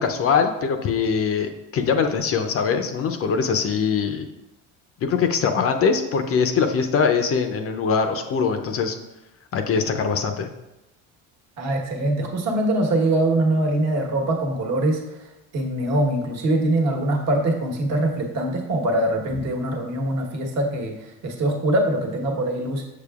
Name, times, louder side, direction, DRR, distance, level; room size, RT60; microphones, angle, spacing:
voice 1, 0.0-4.3 5.0-9.0 9.5-10.5, left 6 dB, 40° left, 7 dB, 0.6 m, -22 dB
voice 2, 11.6-15.0 15.5-22.8, right 1 dB, 45° right, 2 dB, 1.3 m, -23 dB
6.8 x 6.6 x 2.4 m, 0.95 s
cardioid pair, 125°, 36 cm